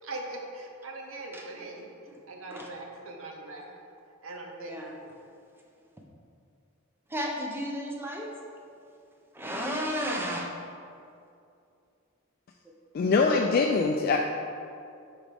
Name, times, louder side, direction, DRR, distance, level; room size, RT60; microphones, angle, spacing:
voice 1, 0.0-1.9 2.3-3.7 4.2-5.0, right 2 dB, 70° right, 1 dB, 0.9 m, -41 dB
voice 2, 4.6-5.0 7.1-8.3 9.3-10.6, equal, 10° right, -1 dB, 0.7 m, -33 dB
voice 3, 12.9-14.2, left 4 dB, 45° left, 2 dB, 0.3 m, -23 dB
7.1 x 4.9 x 3.4 m, 2.5 s
head